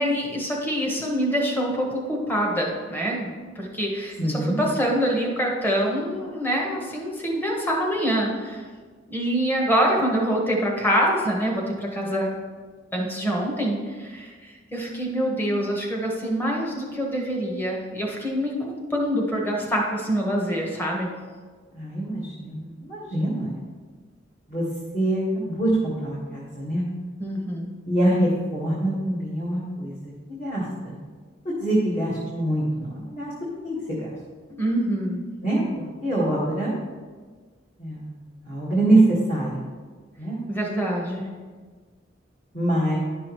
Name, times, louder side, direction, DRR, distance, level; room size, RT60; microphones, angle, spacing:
voice 1, 0.0-8.6 9.1-12.3 12.9-21.1 27.2-27.7 34.5-35.2 40.5-41.2, equal, 10° left, -1 dB, 1.2 m, -25 dB
voice 2, 4.2-4.6 21.7-23.5 24.5-24.6 24.9-26.8 27.9-30.1 30.4-31.0 31.4-33.3 33.6-34.1 35.4-35.6 36.0-36.8 37.8-38.1 38.4-39.6 40.2-40.4 42.5-43.0, right 1 dB, 40° left, -8 dB, 1.7 m, -24 dB
10.5 x 6.2 x 3.1 m, 1.5 s
head